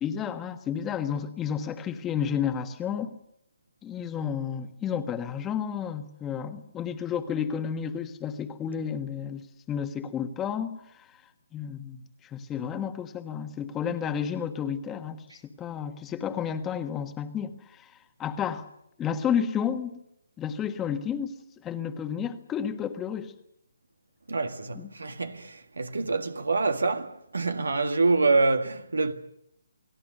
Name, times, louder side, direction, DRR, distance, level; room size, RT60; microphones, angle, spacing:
voice 1, 0.0-3.1 3.8-11.2 11.5-18.7 19.0-20.0 20.4-23.3 24.7-24.9, left 8 dB, 15° left, 1.5 m, -31 dB
voice 2, 24.3-29.1, right 3 dB, 85° right, 1.7 m, -26 dB
29.5 x 18.5 x 6.7 m
hypercardioid pair, 155°, 0 cm